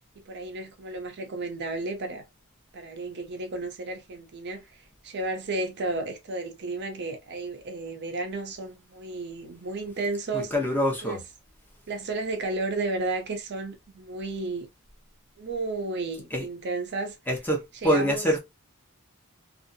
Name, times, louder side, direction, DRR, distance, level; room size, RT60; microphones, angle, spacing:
voice 1, 0.2-2.2 2.7-10.5 11.0-11.2 11.9-14.7 15.4-17.2 17.8-18.2, right 2 dB, 50° right, 0.6 m, -33 dB
voice 2, 10.3-11.2 16.3-16.5 17.3-18.4, equal, 10° left, 0.9 m, -25 dB
2.6 x 2.4 x 2.6 m
head